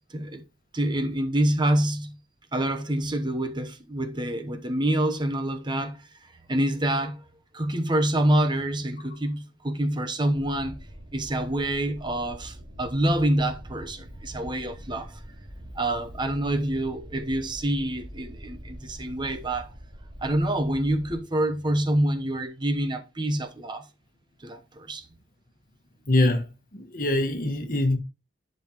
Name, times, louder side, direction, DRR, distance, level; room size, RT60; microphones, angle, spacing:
voice 1, 0.1-0.4 0.7-2.2 2.5-6.0 6.5-7.2 7.5-10.8 11.1-15.2 15.7-19.7 20.2-23.8 24.4-25.0, right 1 dB, 25° right, 0.9 m, -26 dB
sound 1, 10.3-21.2, equal, 50° right, 2.1 m, -44 dB
voice 2, 26.1-26.5 26.7-28.0, left 1 dB, 50° left, 1.5 m, -23 dB
11.0 x 5.4 x 3.0 m
head